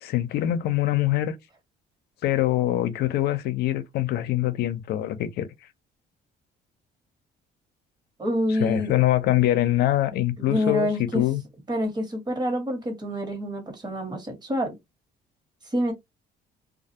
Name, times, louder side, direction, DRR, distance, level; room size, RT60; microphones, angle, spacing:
voice 1, 0.0-1.3 2.2-5.5 8.6-11.4, left 13 dB, 70° left, 0.6 m, -24 dB
voice 2, 8.2-8.9 10.4-11.2 11.7-14.8 15.7-15.9, left 1 dB, 25° right, 1.2 m, -27 dB
2.4 x 2.3 x 2.7 m
cardioid pair, 110°, 17 cm